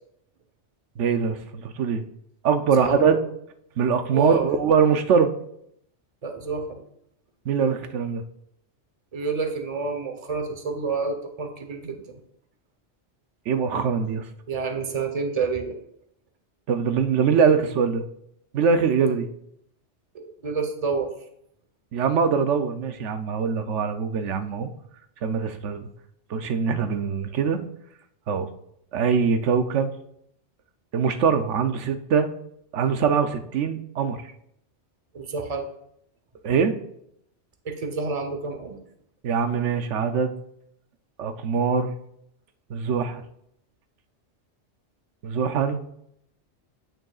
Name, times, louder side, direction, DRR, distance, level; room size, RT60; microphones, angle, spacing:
voice 1, 1.0-2.0 2.4-3.2 3.8-5.3 7.5-8.2 13.5-14.2 16.7-18.0 18.5-19.3 21.9-24.7 25.2-25.9 26.3-27.6 28.3-28.5 28.9-29.9 30.9-32.3 32.7-34.2 36.4-36.8 39.2-40.3 41.2-41.9 42.7-43.2 45.2-45.8, right 6 dB, 85° right, 8 dB, 1.0 m, -23 dB
voice 2, 2.8-3.2 4.1-4.5 6.2-6.8 9.1-12.2 14.5-15.7 20.1-21.1 35.1-35.7 37.6-38.8, right 4 dB, 35° right, 5 dB, 1.0 m, -28 dB
9.0 x 8.9 x 2.4 m, 0.73 s
omnidirectional pair, 1.2 m